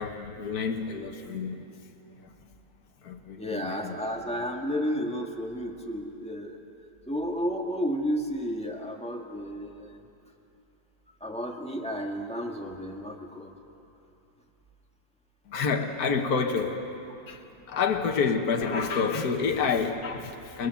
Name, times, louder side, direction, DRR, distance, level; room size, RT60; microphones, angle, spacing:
voice 1, 0.0-1.6 3.0-3.9 15.5-16.8 17.3-17.4 17.7-20.7, left 5 dB, 65° left, 3 dB, 1.8 m, -28 dB
voice 2, 3.4-6.6 7.1-10.0 11.2-13.5, equal, 5° left, 0 dB, 1.7 m, -32 dB
28.5 x 21.5 x 7.1 m, 2.8 s
omnidirectional pair, 1.8 m